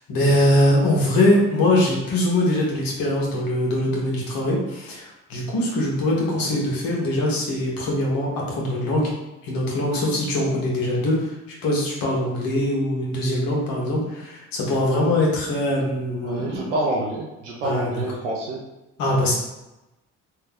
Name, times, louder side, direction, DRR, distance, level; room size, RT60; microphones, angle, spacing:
voice 1, 0.1-9.1 9.4-16.7 17.6-17.9 19.0-19.3, left 1 dB, 70° left, -3 dB, 1.3 m, -22 dB
voice 2, 16.2-18.6, right 1 dB, 90° right, -4 dB, 0.6 m, -27 dB
3.3 x 2.8 x 3.5 m, 0.97 s
hypercardioid pair, 45°, 36 cm